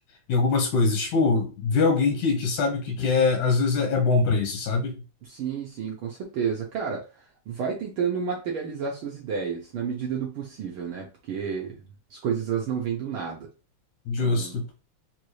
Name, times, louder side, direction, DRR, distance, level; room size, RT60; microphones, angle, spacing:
voice 1, 0.3-5.0 14.1-14.6, left 4 dB, 85° left, 3 dB, 2.4 m, -23 dB
voice 2, 5.2-7.0 7.5-11.8 12.1-13.5 14.2-14.6, right 7 dB, 70° right, -1 dB, 1.2 m, -30 dB
5.3 x 2.6 x 3.1 m, 0.32 s
omnidirectional pair, 3.3 m